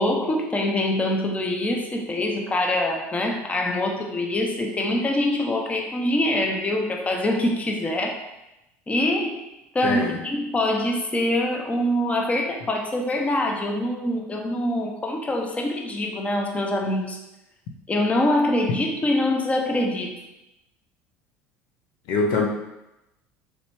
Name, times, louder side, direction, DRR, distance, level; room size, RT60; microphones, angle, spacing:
voice 1, 0.0-8.2 8.9-9.4 9.7-17.2 17.9-20.1, left 1 dB, 20° left, 1 dB, 0.7 m, -24 dB
voice 2, 9.8-10.2 22.1-22.5, left 4 dB, 70° left, 1 dB, 0.7 m, -23 dB
3.4 x 2.7 x 4.3 m, 0.95 s
hypercardioid pair, 85°, 7 cm